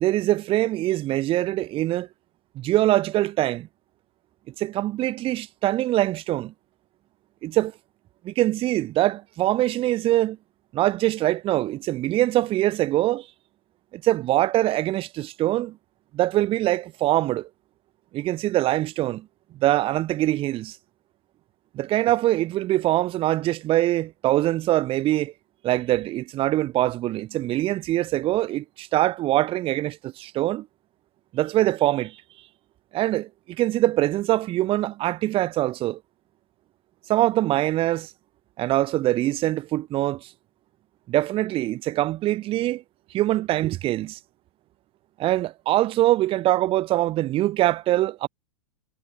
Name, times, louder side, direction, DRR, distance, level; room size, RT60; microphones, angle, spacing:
voice 1, 0.0-2.1 2.5-3.7 4.6-6.5 7.4-7.7 8.2-10.4 10.7-13.3 13.9-15.8 16.1-17.5 18.1-19.3 19.6-20.8 21.7-25.3 25.6-30.7 31.3-32.2 32.9-36.0 37.1-38.1 38.6-40.3 41.1-42.8 43.1-44.2 45.2-48.3, right 15 dB, 35° right, 1.4 m, -23 dB
hypercardioid pair, 100°, 17 cm